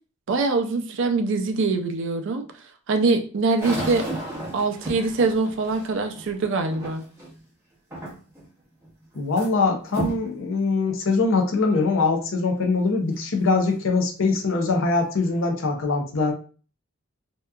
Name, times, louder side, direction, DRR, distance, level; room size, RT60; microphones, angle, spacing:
voice 1, 0.3-2.4 2.9-4.0 4.5-7.0, right 3 dB, 55° right, 5 dB, 0.4 m, -23 dB
sound 1, 3.6-7.4 7.9-8.5 8.8-9.5 9.9-10.3 10.9-11.0 11.7-11.8 14.3-14.4 14.9-15.5, right 1 dB, 10° right, 0.7 m, -33 dB
voice 2, 9.1-16.3, left 3 dB, 60° left, 3 dB, 0.5 m, -22 dB
2.7 x 2.2 x 2.3 m, 0.38 s
head